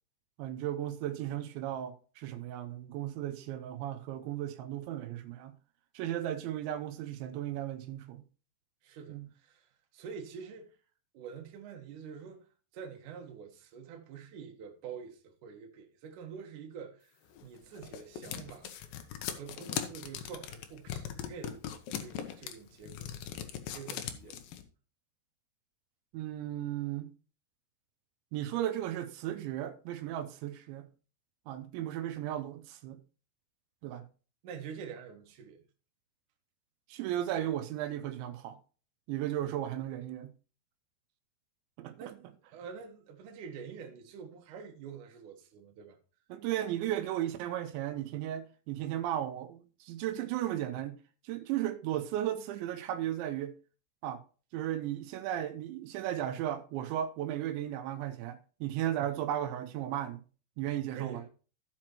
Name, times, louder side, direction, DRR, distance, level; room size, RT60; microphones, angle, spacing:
voice 1, 0.4-5.6 5.9-8.2 9.1-9.3 26.1-27.1 28.3-30.9 31.5-33.0 33.8-34.1 36.9-38.6 39.1-40.3 41.8-42.2 46.3-51.0 51.2-53.5 54.0-54.2 54.5-60.2 60.6-61.2, right 12 dB, 85° right, 3.0 m, -35 dB
voice 2, 8.8-10.7 11.1-12.5 12.7-18.7 19.3-21.6 21.9-23.1 23.7-24.5 34.4-35.6 42.0-46.0 60.9-61.3, right 6 dB, 65° right, 2.2 m, -46 dB
Thumbs On Tape, 17.4-24.6, left 10 dB, 80° left, 2.1 m, -39 dB
15.5 x 6.0 x 3.0 m
omnidirectional pair, 5.3 m